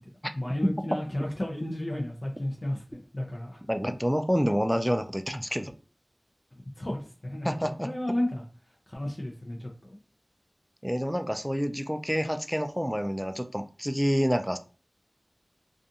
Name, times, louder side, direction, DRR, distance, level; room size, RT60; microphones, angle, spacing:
voice 1, 0.4-3.6 6.8-8.4 8.9-10.0, left 1 dB, 50° left, -1 dB, 0.5 m, -33 dB
voice 2, 3.7-5.7 7.4-7.9 10.8-14.6, equal, ahead, 8 dB, 0.3 m, -28 dB
2.5 x 2.4 x 2.6 m, 0.37 s
wide cardioid pair, 40°, 0 cm